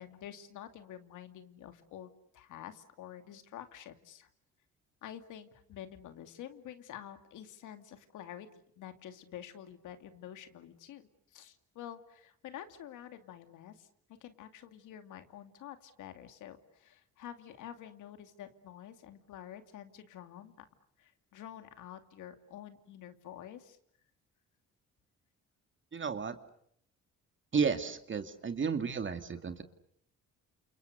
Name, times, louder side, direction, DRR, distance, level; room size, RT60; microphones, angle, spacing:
voice 1, 0.0-4.3 5.0-13.9 14.2-20.5 21.0-23.8, left 10 dB, 85° left, 8 dB, 2.6 m, -48 dB
voice 2, 25.9-26.4 27.5-29.6, right 5 dB, 40° right, 8 dB, 2.3 m, -32 dB
30.0 x 28.5 x 6.8 m, 0.69 s
cardioid pair, 90°, 30 cm